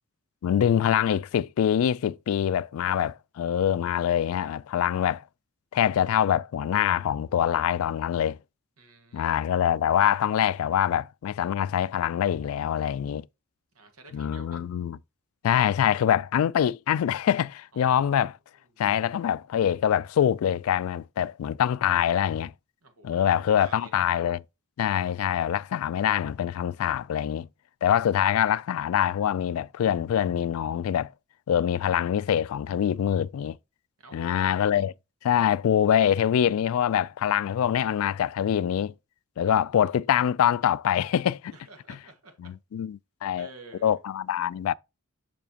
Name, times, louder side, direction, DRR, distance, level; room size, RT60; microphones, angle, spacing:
voice 1, 0.4-5.2 5.7-8.4 9.1-13.2 14.1-15.0 15.4-18.4 18.8-22.5 23.0-24.4 24.8-27.5 27.8-31.1 31.5-33.6 34.1-34.9 35.2-38.9 39.4-41.5 42.4-43.5 43.8-44.7, left 9 dB, 70° left, 0.3 m, -24 dB
voice 2, 8.8-9.6 13.7-14.6 17.7-18.0 18.7-18.8 22.8-24.1 34.0-34.8 39.4-40.1 41.5-42.5 43.3-44.0, right 3 dB, 90° right, 1.7 m, -51 dB
7.0 x 5.8 x 2.8 m
head